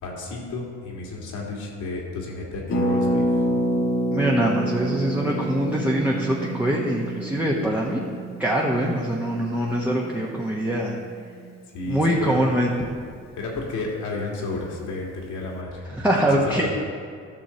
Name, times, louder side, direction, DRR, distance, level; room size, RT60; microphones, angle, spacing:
voice 1, 0.0-3.4 11.7-12.4 13.4-16.7, left 3 dB, 80° left, -2 dB, 2.2 m, -32 dB
Harp, 2.7-12.3 12.6-12.7 12.8-13.2, right 1 dB, 60° left, 1.6 m, -28 dB
voice 2, 4.1-8.0 8.4-11.0 11.9-12.9 15.9-16.7, right 1 dB, 5° right, -4 dB, 1.1 m, -23 dB
12.5 x 6.5 x 4.4 m, 2.2 s
cardioid pair, 90°, 30 cm